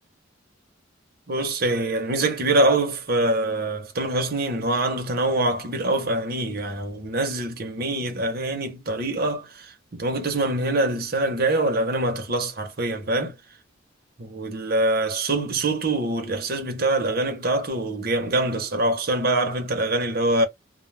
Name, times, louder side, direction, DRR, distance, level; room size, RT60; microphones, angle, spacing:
voice 1, 1.3-13.4 14.2-20.5, right 2 dB, 50° right, 0.8 m, -24 dB
2.1 x 2.1 x 3.2 m
head